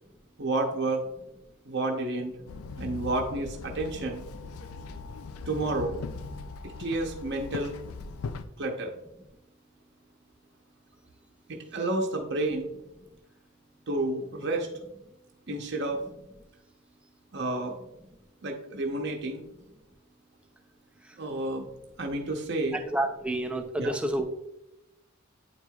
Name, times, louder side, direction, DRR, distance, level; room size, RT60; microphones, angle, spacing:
voice 1, 0.4-1.0 1.7-2.3 2.8-4.3 5.5-6.0 6.6-7.8 8.6-9.0 11.5-12.7 13.9-14.7 15.5-16.0 17.3-17.8 18.4-19.4 21.2-21.6 22.0-22.8 23.8-23.9, right 2 dB, 55° right, 1 dB, 0.8 m, -30 dB
Walk footsteps / Chatter / Hiss, 2.5-8.4, left 4 dB, 80° left, 0.4 m, -39 dB
voice 2, 22.7-24.3, right 1 dB, 5° right, 4 dB, 0.4 m, -29 dB
9.5 x 4.5 x 2.3 m, 0.89 s
head